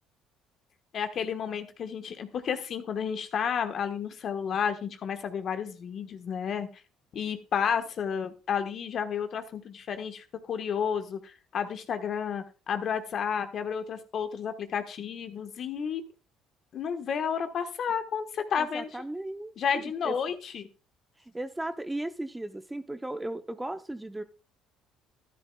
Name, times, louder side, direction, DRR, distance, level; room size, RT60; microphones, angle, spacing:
voice 1, 0.9-6.7 7.1-16.0 16.7-18.9 19.6-20.7, left 7 dB, 55° left, 8 dB, 1.3 m, -31 dB
voice 2, 18.6-20.1 21.3-24.2, right 1 dB, 10° right, 10 dB, 0.7 m, -36 dB
12.5 x 11.0 x 2.3 m, 0.33 s
supercardioid pair, 75°, 0 cm